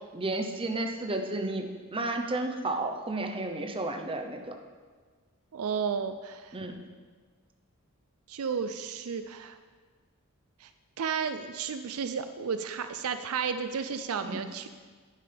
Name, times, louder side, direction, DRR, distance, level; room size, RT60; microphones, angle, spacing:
voice 1, 0.1-4.6 6.5-6.8 14.2-14.4, right 2 dB, 25° right, 4 dB, 0.8 m, -32 dB
voice 2, 5.5-6.5 8.3-9.6 10.6-10.7 11.0-14.7, right 6 dB, 70° right, 9 dB, 0.4 m, -33 dB
11.0 x 9.3 x 3.5 m, 1.5 s
head